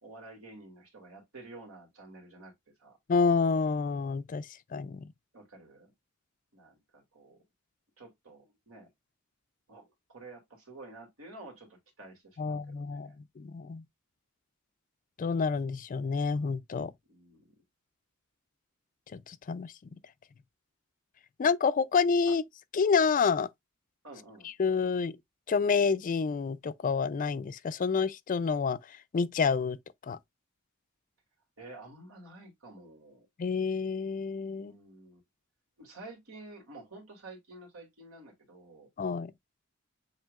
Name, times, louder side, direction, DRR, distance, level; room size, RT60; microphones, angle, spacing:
voice 1, 0.0-2.5 2.8-3.0 5.3-5.9 6.5-7.4 8.0-8.9 9.7-13.2 17.1-17.5 22.3-22.4 24.0-24.5 31.6-33.3 34.5-35.2 35.8-38.9, right 2 dB, 85° right, 2.3 m, -50 dB
voice 2, 3.1-5.1 12.4-13.8 15.2-16.9 19.1-20.0 21.4-22.4 22.7-23.5 24.6-25.2 25.5-29.8 30.0-30.2 33.4-34.7 39.0-39.3, left 5 dB, 40° left, 0.4 m, -28 dB
7.3 x 2.9 x 2.4 m
head